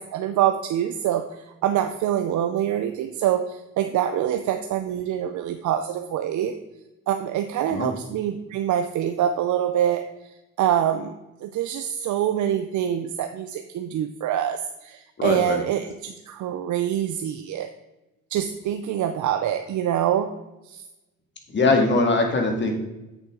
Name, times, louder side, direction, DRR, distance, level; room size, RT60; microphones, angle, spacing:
voice 1, 0.0-6.5 7.1-10.0 10.6-11.1 11.4-17.7 18.3-20.3 20.6-20.8, right 10 dB, 75° right, 7 dB, 0.6 m, -25 dB
voice 2, 15.2-15.6 21.5-22.7, left 3 dB, 40° left, 2 dB, 2.1 m, -21 dB
8.2 x 7.1 x 3.8 m, 0.99 s
cardioid pair, 90°, 30 cm